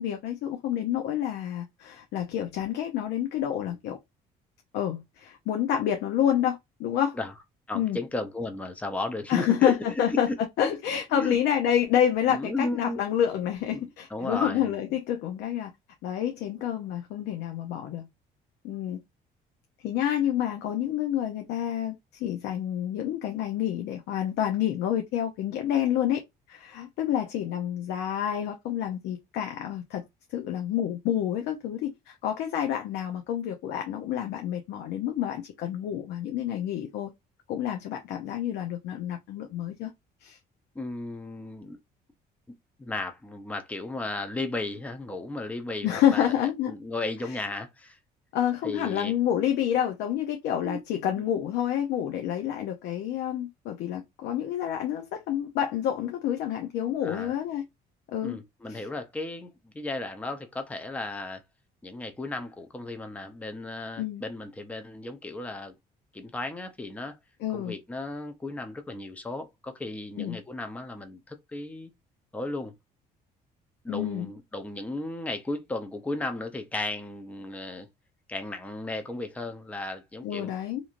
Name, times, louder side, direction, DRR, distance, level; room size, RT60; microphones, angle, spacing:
voice 1, 0.0-4.0 4.7-7.2 7.7-8.0 9.3-10.3 10.6-15.7 16.0-18.1 18.6-19.0 19.8-26.2 26.5-30.0 30.3-37.1 37.5-39.9 40.2-40.4 45.8-46.7 48.3-57.6 58.1-58.4 58.7-58.8 64.0-64.2 67.4-67.7 70.2-70.4 73.9-74.3 80.2-80.8, left 10 dB, 80° left, 0.5 m, -28 dB
voice 2, 7.7-9.7 10.1-10.3 10.6-10.7 11.1-11.4 12.3-13.1 13.7-15.0 40.7-41.8 42.8-46.3 46.7-48.0 48.6-49.1 50.6-50.8 57.0-57.3 58.2-61.4 61.8-65.7 66.1-67.2 67.5-71.9 72.3-72.7 73.8-77.9 78.3-80.5, left 2 dB, 10° left, 0.5 m, -35 dB
2.9 x 2.6 x 2.4 m
cardioid pair, 110°, 17 cm